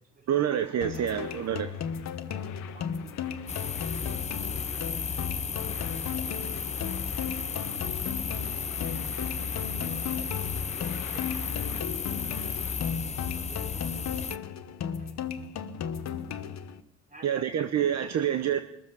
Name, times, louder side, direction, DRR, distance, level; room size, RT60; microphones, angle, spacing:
voice 1, 0.3-1.7 2.3-2.4 17.2-18.6, right 9 dB, 60° right, 9 dB, 0.9 m, -27 dB
sound 1, 0.8-16.8, left 7 dB, 65° left, 1.1 m, -36 dB
sound 2, 0.9-13.0, left 11 dB, 85° left, 1.1 m, -48 dB
voice 2, 2.4-3.4 3.7-5.0 5.6-6.1 7.2-7.7 8.3-8.7 9.7-10.2 10.8-11.9 12.5-12.6 13.3-14.3 14.9-15.2 17.1-17.5, right 2 dB, 25° right, 0 dB, 5.4 m, -53 dB
sound 3, 3.5-14.4, left 5 dB, 20° left, 0.5 m, -34 dB
21.5 x 7.6 x 6.7 m, 0.85 s
cardioid pair, 90°, 30 cm